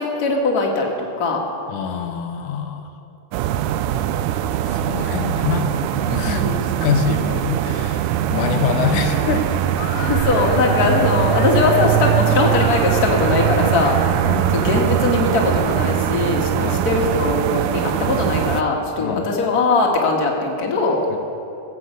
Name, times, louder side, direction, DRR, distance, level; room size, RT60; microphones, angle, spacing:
voice 1, 0.0-1.4 6.2-6.6 9.9-14.0 14.5-21.0, left 3 dB, 35° left, 0 dB, 1.8 m, -20 dB
voice 2, 1.7-2.9 4.6-5.7 6.0-6.4 6.8-9.5 14.2-14.8 16.6-16.9 19.0-19.3 21.1-21.2, left 6 dB, 85° left, 5 dB, 2.5 m, -25 dB
sound 1, 3.3-18.6, right 12 dB, 85° right, 2.1 m, -21 dB
sound 2, 3.5-16.2, left 6 dB, 70° left, 1.9 m, -37 dB
15.0 x 7.9 x 7.8 m, 2.9 s
omnidirectional pair, 3.5 m